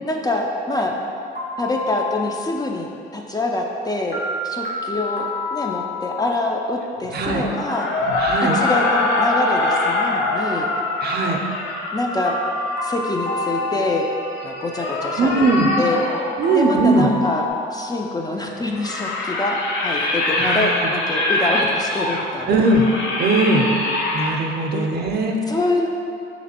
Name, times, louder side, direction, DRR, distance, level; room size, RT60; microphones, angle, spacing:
voice 1, 0.0-1.0 1.6-7.9 8.5-10.7 11.9-12.4 12.8-14.0 14.4-15.5 15.8-16.0 16.5-22.6 24.7-24.9 25.5-25.9, left 2 dB, 20° left, 1 dB, 0.3 m, -25 dB
sound 1, 1.4-2.5 4.1-6.4 8.1-10.5 12.3-14.6 16.4-17.5, left 2 dB, 60° left, 0.9 m, -28 dB
sound 2, 7.0-16.3 18.4-24.3, left 2 dB, 75° left, 0.6 m, -24 dB
voice 2, 7.1-7.4 8.2-8.6 11.0-11.4 15.2-15.7 16.4-17.1 20.0-20.9 22.5-22.9 23.2-23.7 24.1-25.4, right 3 dB, 55° right, 2 dB, 0.5 m, -20 dB
3.3 x 3.0 x 4.2 m, 2.6 s
cardioid pair, 90°, 20 cm